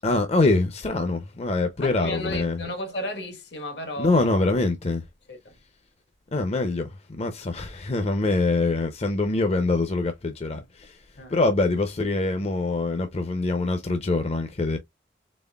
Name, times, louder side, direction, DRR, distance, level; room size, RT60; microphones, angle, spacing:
voice 1, 0.0-2.6 4.0-5.0 6.3-6.9 7.2-10.9 11.3-14.8, left 2 dB, 35° left, 0.5 m, -24 dB
voice 2, 1.8-4.6 5.3-5.5 11.2-11.4, left 1 dB, 70° left, 1.3 m, -34 dB
4.1 x 3.5 x 2.3 m
head